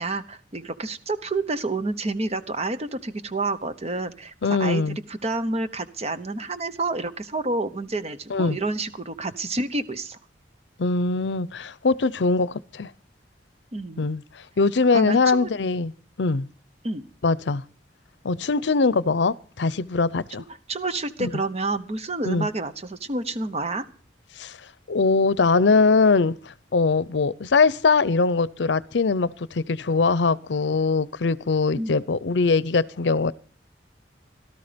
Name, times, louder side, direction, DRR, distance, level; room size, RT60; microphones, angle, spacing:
voice 1, 0.0-4.3 4.6-4.8 5.1-10.2 13.7-14.0 14.9-15.5 16.8-17.1 20.7-23.9 31.7-32.0, right 2 dB, 35° right, 1.0 m, -29 dB
voice 2, 4.4-5.0 8.3-8.6 10.8-12.9 14.0-14.2 14.6-15.9 16.2-16.5 17.2-17.6 18.2-20.4 21.2-21.3 22.2-22.5 24.4-24.5 24.9-26.4 26.7-33.3, left 4 dB, 75° left, 0.6 m, -22 dB
17.5 x 12.5 x 5.2 m
head